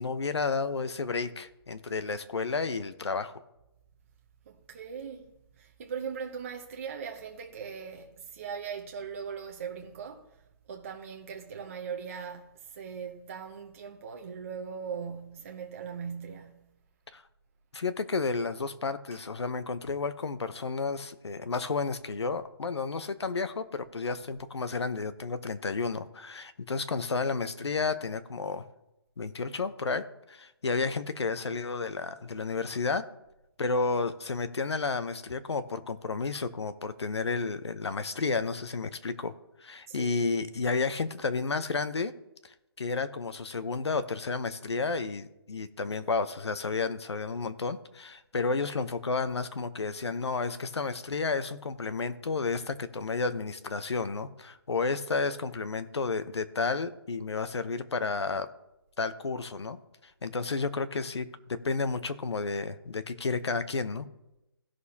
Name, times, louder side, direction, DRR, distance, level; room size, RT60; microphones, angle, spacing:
voice 1, 0.0-3.4 17.1-17.2 17.7-28.7 29.2-33.1 33.6-39.3 39.6-42.1 42.4-58.5 59.0-64.1, left 4 dB, 85° left, 0.9 m, -31 dB
voice 2, 4.5-5.3 5.6-10.4 10.7-16.7 19.1-19.2 39.9-40.2, right 6 dB, 30° right, 0.8 m, -40 dB
17.0 x 6.3 x 2.8 m
hypercardioid pair, 165°, 14 cm